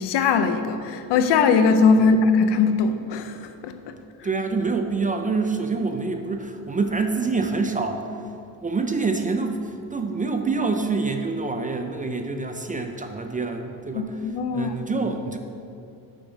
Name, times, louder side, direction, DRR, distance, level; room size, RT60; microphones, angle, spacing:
voice 1, 0.0-3.9 13.9-14.7, left 5 dB, 80° left, 9 dB, 0.7 m, -20 dB
voice 2, 4.2-8.2 8.6-14.2 14.5-15.4, right 4 dB, 20° right, 5 dB, 0.3 m, -26 dB
6.9 x 5.3 x 6.1 m, 2.6 s
cardioid pair, 140°, 41 cm